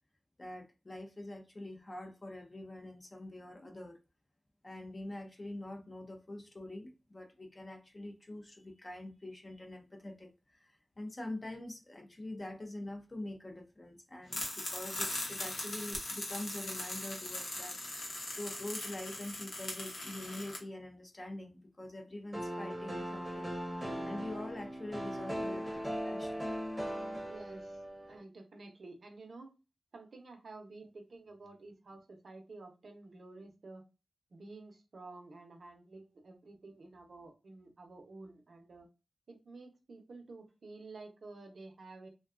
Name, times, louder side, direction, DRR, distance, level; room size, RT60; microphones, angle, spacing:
voice 1, 0.4-4.0 4.6-23.5 24.0-26.5, left 1 dB, 25° left, 0.5 m, -45 dB
sound 1, 14.3-20.6, left 2 dB, 80° left, 0.8 m, -40 dB
sound 2, 22.3-28.2, equal, 15° right, 0.7 m, -39 dB
voice 2, 27.3-27.8 28.1-29.5 29.9-33.8 34.3-38.9 39.3-42.1, right 3 dB, 65° right, 0.6 m, -51 dB
2.5 x 2.2 x 2.4 m
wide cardioid pair, 130°, 0 cm